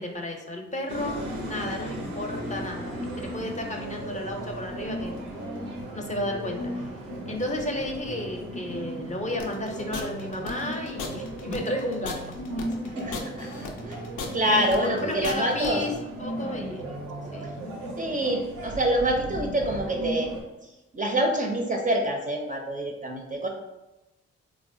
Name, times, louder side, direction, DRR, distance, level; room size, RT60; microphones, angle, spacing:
voice 1, 0.0-5.1 5.9-6.8 7.3-12.2 13.4-13.5 13.8-13.9 14.8-17.1 17.3-17.9, left 1 dB, 25° left, 1 dB, 0.6 m, -33 dB
sound 1, 0.9-20.4, right 1 dB, 90° right, 0.6 m, -36 dB
sound 2, 9.4-15.7, left 5 dB, 85° left, 0.5 m, -36 dB
voice 2, 13.0-14.0 14.3-15.8 18.0-20.3 20.9-23.5, right 1 dB, 25° right, 1 dB, 0.5 m, -26 dB
3.0 x 2.0 x 2.6 m, 1.0 s
supercardioid pair, 45°, 30 cm